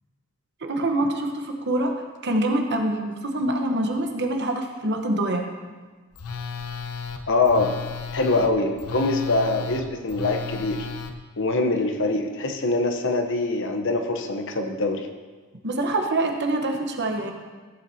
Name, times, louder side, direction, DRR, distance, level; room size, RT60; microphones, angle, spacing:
voice 1, 0.6-2.0 2.2-5.5 15.6-17.3, right 1 dB, 50° right, 3 dB, 1.0 m, -25 dB
Telephone, 6.1-11.1, left 5 dB, 90° left, 0.7 m, -34 dB
voice 2, 7.3-7.7 8.1-10.9 11.4-15.1, left 2 dB, 60° left, 5 dB, 0.9 m, -24 dB
15.0 x 7.3 x 2.8 m, 1.4 s
head